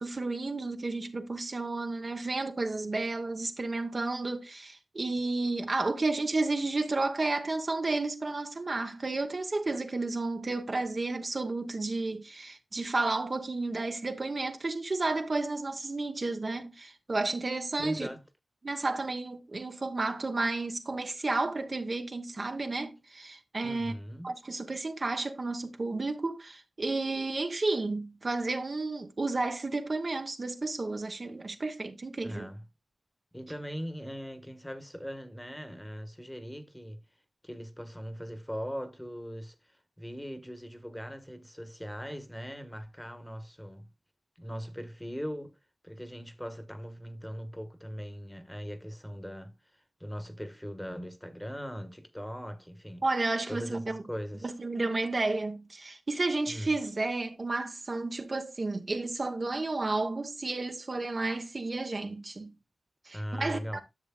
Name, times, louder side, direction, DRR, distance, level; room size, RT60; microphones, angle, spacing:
voice 1, 0.0-18.1 18.6-23.9 24.2-32.5 53.0-54.0 54.4-62.5 63.0-63.8, right 3 dB, 45° right, 1.0 m, -32 dB
voice 2, 17.8-18.2 23.6-24.3 32.2-32.7 33.3-37.1 37.4-43.9 44.4-45.6 45.8-49.6 50.0-53.1 53.5-54.5 56.5-56.7 63.1-63.8, equal, 5° left, 1.3 m, -40 dB
10.5 x 6.8 x 2.3 m
cardioid pair, 65°, 0 cm